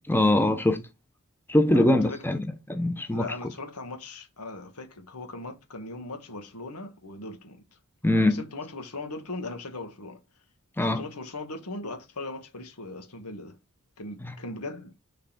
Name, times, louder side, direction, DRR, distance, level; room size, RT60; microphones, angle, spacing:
voice 1, 0.1-0.8 1.5-3.3 8.0-8.4 10.8-11.0 14.2-14.3, left 1 dB, 10° left, 0.8 m, -23 dB
voice 2, 1.7-2.3 3.1-7.6 8.2-10.2 10.8-13.6 14.0-14.9, left 2 dB, 90° left, 1.6 m, -39 dB
6.6 x 4.1 x 5.1 m
head